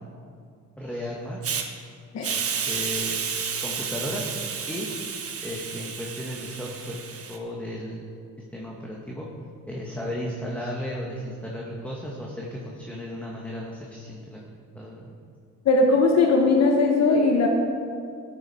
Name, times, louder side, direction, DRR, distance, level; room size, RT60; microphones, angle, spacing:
voice 1, 0.8-1.4 2.3-3.2 3.6-4.3 4.7-4.9 5.4-7.0 7.3-8.1 8.5-9.3 9.7-14.4 14.7-15.1, left 1 dB, 5° left, -3 dB, 1.5 m, -34 dB
Hiss, 1.4-1.6 2.2-7.4, right 6 dB, 50° right, 1.2 m, -31 dB
voice 2, 2.1-2.5 15.6-17.5, left 3 dB, 60° left, 1 dB, 1.2 m, -19 dB
13.5 x 8.4 x 4.3 m, 2.3 s
cardioid pair, 90°, 30 cm